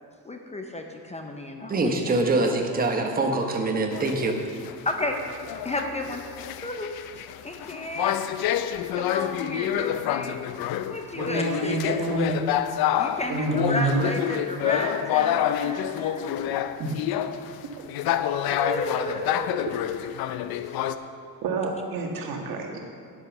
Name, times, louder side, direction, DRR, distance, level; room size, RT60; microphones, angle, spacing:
voice 1, 0.2-2.2 4.8-5.2 5.6-6.2 6.6-8.2 8.9-10.4 10.9-12.3 13.0-17.0 18.5-19.7, left 1 dB, 20° left, 4 dB, 0.7 m, -33 dB
voice 2, 1.7-4.4, right 2 dB, 25° right, 2 dB, 1.1 m, -24 dB
Paronella Park - Enter The Bat Cave, 3.9-20.9, left 10 dB, 70° left, 0.6 m, -28 dB
voice 3, 11.2-12.5 13.3-14.0 16.8-16.9 21.4-22.8, right 3 dB, 65° right, 1 dB, 1.8 m, -28 dB
10.0 x 8.2 x 6.0 m, 2.4 s
cardioid pair, 135°, 38 cm